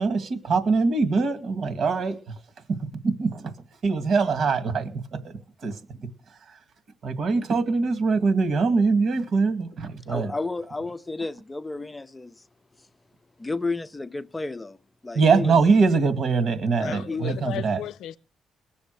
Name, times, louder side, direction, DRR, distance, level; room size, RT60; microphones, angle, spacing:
voice 1, 0.0-2.3 2.7-3.5 3.8-5.3 5.6-6.1 7.0-10.3 15.1-17.8, right 4 dB, 60° right, 2.2 m, -23 dB
voice 2, 10.1-12.4 12.8-12.9 13.4-14.8 15.0-15.5 16.8-17.4, left 3 dB, 15° left, 0.6 m, -32 dB
voice 3, 16.8-18.2, left 11 dB, 80° left, 0.6 m, -35 dB
20.0 x 7.1 x 6.6 m
cardioid pair, 90°, 0 cm